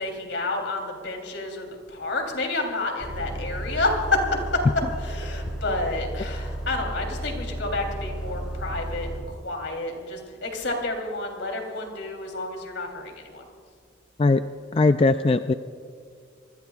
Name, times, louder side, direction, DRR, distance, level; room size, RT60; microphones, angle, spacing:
voice 1, 0.0-4.2 4.5-4.6 5.0-13.4, left 2 dB, 75° left, 2 dB, 3.3 m, -30 dB
Bus, 3.0-9.2, right 1 dB, 5° right, 4.1 m, -33 dB
voice 2, 14.7-15.5, left 3 dB, 30° left, 10 dB, 0.3 m, -19 dB
27.0 x 20.5 x 2.4 m, 2.1 s
head